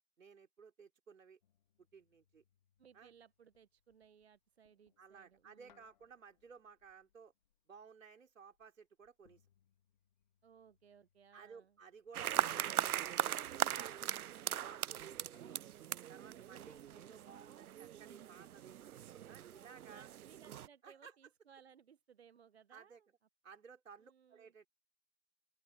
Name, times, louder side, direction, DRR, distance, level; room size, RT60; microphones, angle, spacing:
voice 1, 0.2-1.4 1.9-2.4 2.9-3.1 5.0-7.3 7.7-9.4 11.3-12.7 13.0-14.1 14.5-15.6 16.1-18.8 19.3-20.1 20.8-21.1 22.7-23.0 23.4-24.7, right 6 dB, 65° right, 4.1 m, -57 dB
sound 1, 1.4-16.2, left 10 dB, 30° left, 2.3 m, -78 dB
voice 2, 2.8-5.9 10.4-11.8 16.4-16.9 19.6-23.1 24.0-24.5, right 7 dB, 50° right, 0.8 m, -64 dB
sound 2, 12.1-20.7, right 11 dB, 85° right, 0.5 m, -40 dB
open air
hypercardioid pair, 160°, 42 cm